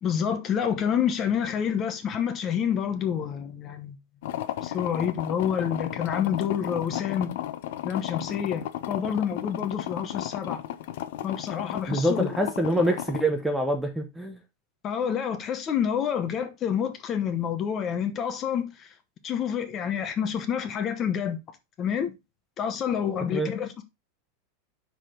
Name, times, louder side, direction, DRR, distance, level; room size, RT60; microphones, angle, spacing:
voice 1, 0.0-4.0 4.6-7.4 7.8-10.6 11.2-12.3 14.8-18.9 19.2-21.4 21.8-22.1 22.6-23.8, left 8 dB, 25° left, 1.0 m, -28 dB
sound 1, 4.2-13.2, left 12 dB, 60° left, 0.7 m, -34 dB
voice 2, 11.9-14.4 23.3-23.5, right 1 dB, ahead, 0.8 m, -25 dB
6.1 x 4.9 x 5.0 m
supercardioid pair, 170°, 0 cm